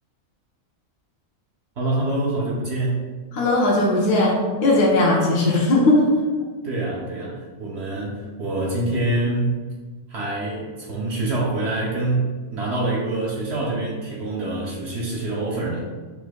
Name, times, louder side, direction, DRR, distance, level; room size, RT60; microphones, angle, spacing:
voice 1, 1.8-3.0 6.6-9.6 10.1-15.8, right 2 dB, 60° right, -3 dB, 0.7 m, -25 dB
voice 2, 3.3-6.2, left 2 dB, 90° left, -3 dB, 1.3 m, -18 dB
4.5 x 4.2 x 2.2 m, 1.4 s
omnidirectional pair, 1.6 m